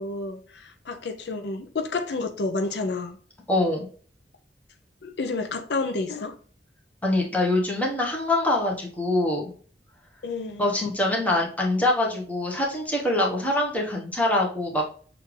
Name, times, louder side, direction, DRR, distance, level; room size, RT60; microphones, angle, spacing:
voice 1, 0.0-3.2 5.0-6.4 10.2-10.7, left 3 dB, 70° left, 0.5 m, -30 dB
voice 2, 3.5-3.9 7.0-9.5 10.6-14.9, left 1 dB, 10° left, 1.0 m, -24 dB
6.5 x 2.5 x 3.1 m
head